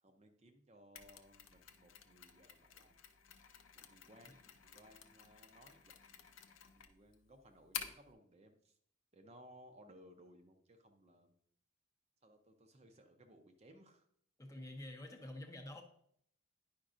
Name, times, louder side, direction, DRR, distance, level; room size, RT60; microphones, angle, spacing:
voice 1, 0.0-2.9 3.7-6.3 6.7-8.8 9.1-11.3 12.2-14.0, equal, 30° right, 5 dB, 0.5 m, -62 dB
Mechanisms, 0.9-8.1, left 8 dB, 65° left, 0.6 m, -51 dB
voice 2, 14.4-15.8, left 1 dB, 15° left, 2 dB, 0.6 m, -48 dB
10.0 x 5.1 x 2.5 m, 0.67 s
head